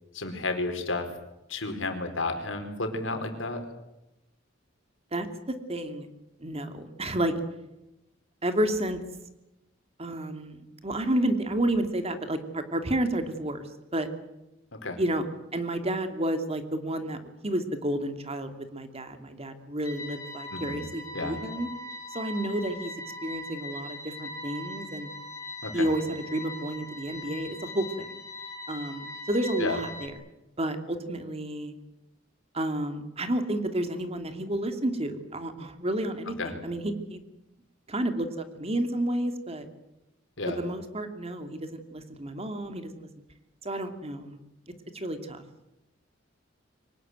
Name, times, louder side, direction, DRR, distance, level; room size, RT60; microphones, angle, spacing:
voice 1, 0.1-1.1 1.5-3.6 14.7-15.0 20.5-20.8 21.1-21.4 25.6-25.9 29.6-29.8 36.4-36.5 40.4-40.6, left 2 dB, 80° left, 5 dB, 4.5 m, -32 dB
voice 2, 5.7-6.1 6.4-7.3 8.4-9.0 10.0-13.7 13.9-14.1 15.0-15.3 15.5-17.2 17.4-21.7 22.1-22.9 23.2-25.1 25.7-27.9 28.7-30.1 30.6-31.7 32.5-37.2 37.9-39.7 40.5-43.1 43.6-44.4 44.9-45.4, right 1 dB, 30° right, 8 dB, 2.6 m, -30 dB
sound 1, 19.8-30.1, left 1 dB, 15° left, 3.4 m, -40 dB
24.0 x 19.0 x 9.3 m, 0.92 s
head